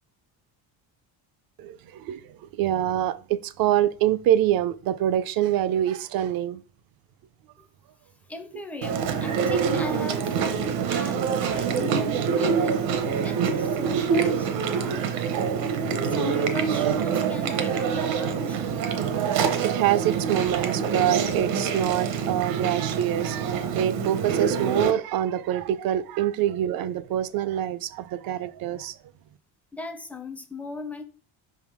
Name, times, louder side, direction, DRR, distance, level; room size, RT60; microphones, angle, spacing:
voice 1, 1.6-6.6 12.1-12.6 13.9-14.0 14.8-15.4 18.9-29.0, right 11 dB, 50° right, 0.5 m, -26 dB
voice 2, 8.3-12.0 12.3-12.7 13.0-15.2 15.8-18.6 29.7-31.0, left 2 dB, 5° left, 0.4 m, -39 dB
Chewing mastication, 8.8-24.9, right 6 dB, 75° right, 1.1 m, -25 dB
5.3 x 3.7 x 4.8 m
cardioid pair, 160°, 46 cm